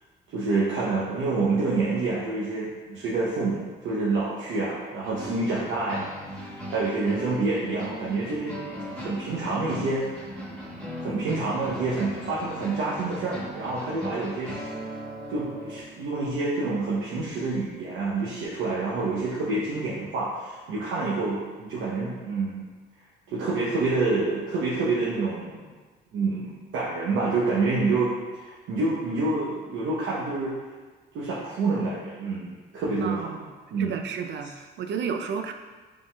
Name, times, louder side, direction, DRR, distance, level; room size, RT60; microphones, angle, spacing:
voice 1, 0.3-8.6 8.9-10.1 11.0-14.7 15.3-22.7 23.3-25.6 26.1-28.1 28.4-30.5 31.1-33.3 33.7-34.0, right 3 dB, 85° right, -7 dB, 0.8 m, -27 dB
sound 1, 5.0-15.8, equal, 5° left, 1.4 m, -38 dB
voice 2, 33.0-33.5 33.8-35.5, right 6 dB, 65° right, 6 dB, 0.4 m, -32 dB
4.9 x 3.8 x 2.2 m, 1.4 s
cardioid pair, 90°, 20 cm